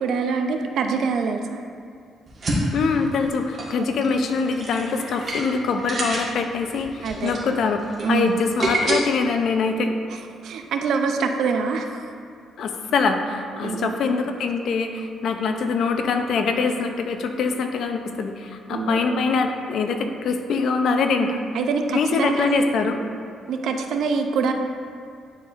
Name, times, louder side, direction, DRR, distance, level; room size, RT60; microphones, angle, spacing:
voice 1, 0.0-1.6 3.8-3.9 7.0-7.4 8.0-8.5 10.1-12.1 13.6-13.9 18.7-19.1 21.2-22.6 23.5-24.5, right 5 dB, 75° right, 5 dB, 0.5 m, -25 dB
sound 1, 2.3-8.9, right 1 dB, 45° right, 1.5 m, -28 dB
voice 2, 2.7-9.9 12.6-21.4 21.9-23.0, left 4 dB, 70° left, 6 dB, 0.5 m, -23 dB
10.0 x 4.2 x 2.5 m, 2.4 s
cardioid pair, 90°, 0 cm